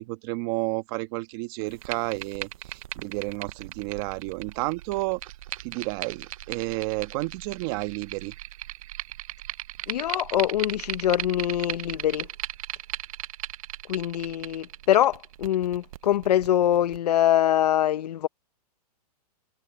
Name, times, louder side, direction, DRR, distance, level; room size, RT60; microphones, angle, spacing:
voice 1, 0.0-5.2 5.6-8.3, right 23 dB, 35° right, 1.4 m, -31 dB
sound 1, 1.7-17.0, right 14 dB, 60° right, 0.7 m, -38 dB
voice 2, 9.9-12.3 13.9-18.3, left 11 dB, 80° left, 0.8 m, -24 dB
hypercardioid pair, 155°, 20 cm